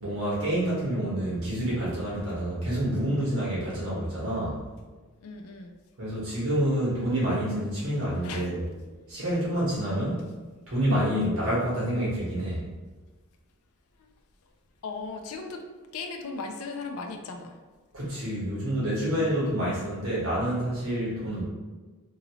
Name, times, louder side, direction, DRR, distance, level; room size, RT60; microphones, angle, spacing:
voice 1, 0.0-4.6 6.0-8.6 9.1-10.2 10.7-12.6 17.9-21.4, right 1 dB, 65° right, -7 dB, 1.3 m, -28 dB
voice 2, 5.2-5.7 8.2-8.5 14.0-14.1 14.8-15.7 15.9-17.6, left 4 dB, 70° left, 3 dB, 0.4 m, -37 dB
2.8 x 2.7 x 3.0 m, 1.3 s
head